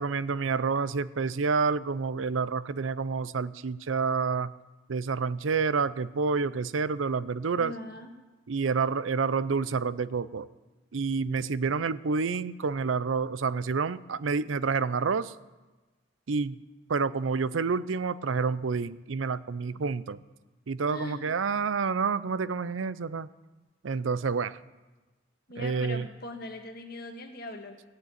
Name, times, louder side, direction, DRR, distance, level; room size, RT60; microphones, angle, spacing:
voice 1, 0.0-4.5 4.9-7.7 8.5-10.5 10.9-15.3 16.3-16.6 16.9-20.2 20.7-23.3 23.8-24.6 25.6-26.0, right 5 dB, 85° right, 16 dB, 0.5 m, -28 dB
voice 2, 7.6-8.1 20.9-21.2 25.5-27.8, left 2 dB, 50° left, 4 dB, 1.7 m, -40 dB
17.5 x 6.7 x 9.1 m, 1.2 s
head